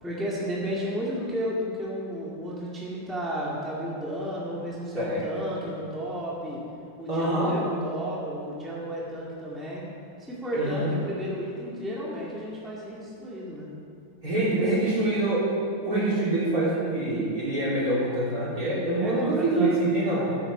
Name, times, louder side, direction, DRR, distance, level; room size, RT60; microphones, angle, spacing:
voice 1, 0.0-6.6 7.0-9.9 10.2-13.7 14.3-15.0 19.0-19.8, equal, ahead, -6 dB, 2.0 m, -33 dB
voice 2, 4.9-5.5 7.1-7.6 10.5-10.9 14.2-15.5 15.8-20.3, right 2 dB, 45° right, -7 dB, 3.8 m, -25 dB
15.0 x 8.9 x 5.5 m, 2.8 s
omnidirectional pair, 2.2 m